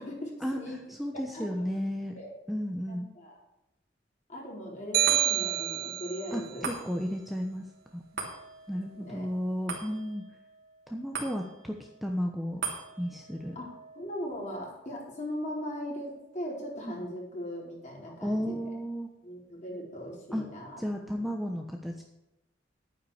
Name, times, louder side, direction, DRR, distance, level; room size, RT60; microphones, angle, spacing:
voice 1, 0.0-0.8 1.3-1.8 2.1-2.3 2.9-3.4 4.3-6.7 8.9-9.3 13.5-18.7 19.2-20.8 21.1-21.3, equal, 40° left, -3 dB, 4.4 m, -39 dB
voice 2, 0.9-2.1 2.5-3.1 6.3-7.6 7.9-8.0 8.7-10.2 10.9-12.6 13.0-13.6 16.8-17.1 18.1-19.1 20.3-20.4 20.8-22.0, equal, ahead, 1 dB, 1.0 m, -33 dB
sound 1, 4.9-6.3, right 13 dB, 50° right, 0.4 m, -27 dB
sound 2, 5.0-17.6 18.1-18.2, right 4 dB, 70° right, 3.1 m, -43 dB
11.5 x 9.6 x 5.0 m, 0.92 s
head